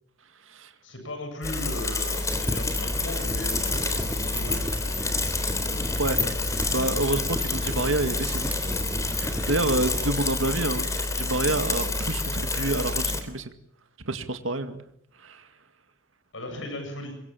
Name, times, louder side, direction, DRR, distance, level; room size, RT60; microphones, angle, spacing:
voice 1, 0.8-4.7 16.3-17.1, left 1 dB, 70° left, 5 dB, 7.8 m, -37 dB
Bicycle / Mechanisms, 1.4-13.2, left 3 dB, 15° left, 3.5 m, -28 dB
Fire, 2.3-10.1, equal, 10° right, 2.7 m, -36 dB
sound 1, 3.6-10.1, left 1 dB, 35° left, 2.3 m, -40 dB
voice 2, 6.7-8.5 9.1-13.5 14.1-14.8 15.2-15.5, right 2 dB, 85° right, 7 dB, 2.1 m, -28 dB
26.5 x 23.0 x 7.6 m, 0.73 s
head